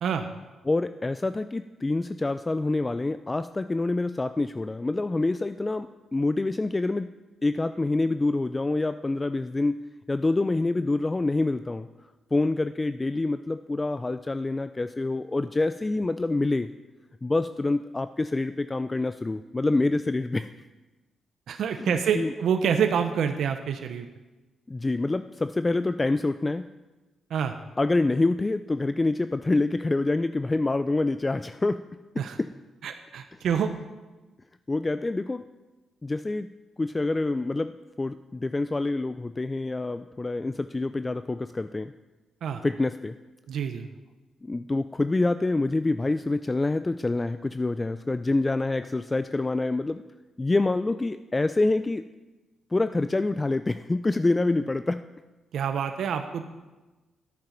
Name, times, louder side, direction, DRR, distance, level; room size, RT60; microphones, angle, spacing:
voice 1, 0.7-7.1 7.4-9.8 10.1-11.9 12.3-16.7 17.2-20.5 21.8-22.3 24.7-26.6 27.8-31.8 32.4-32.5 34.7-35.4 36.0-36.5 36.8-37.7 38.0-41.9 42.6-43.1 44.4-50.0 50.4-52.0 52.7-55.0, left 2 dB, 20° left, 11 dB, 0.3 m, -26 dB
voice 2, 21.5-24.1 27.3-27.6 32.2-32.4 32.8-33.7 42.4-42.6 43.5-43.9 55.5-56.4, right 7 dB, 75° right, 7 dB, 0.7 m, -27 dB
11.0 x 8.8 x 5.8 m, 1.2 s
cardioid pair, 110°, 0 cm